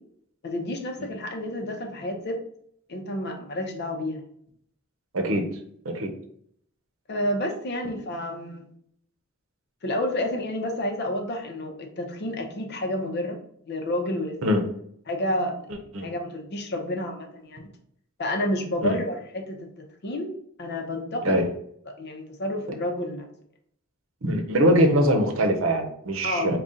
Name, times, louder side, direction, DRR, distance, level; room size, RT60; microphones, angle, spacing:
voice 1, 0.4-2.4 2.9-4.2 7.1-8.7 9.8-13.4 13.6-14.4 15.1-15.6 16.0-17.7 18.2-19.6 20.0-21.4 21.9-23.3 26.2-26.5, left 1 dB, 55° left, 4 dB, 0.7 m, -30 dB
voice 2, 5.1-5.5 5.8-6.1 14.4-14.6 15.9-16.1 18.8-19.0 21.2-21.5 24.2-26.6, equal, 80° right, 5 dB, 0.7 m, -22 dB
3.9 x 2.3 x 3.7 m, 0.67 s
head